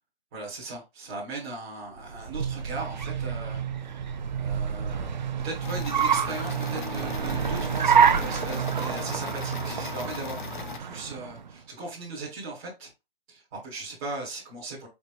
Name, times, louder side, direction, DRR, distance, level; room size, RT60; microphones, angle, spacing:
voice 1, 0.3-3.6 4.3-5.1 5.4-12.9 13.3-14.9, right 3 dB, 5° right, 0.7 m, -38 dB
Car, 2.0-11.5, right 7 dB, 50° right, 0.4 m, -28 dB
sound 1, 2.4-10.0, right 10 dB, 70° right, 0.9 m, -35 dB
sound 2, 5.6-10.8, left 6 dB, 55° left, 0.6 m, -38 dB
4.4 x 4.0 x 2.2 m
hypercardioid pair, 170°, 30 cm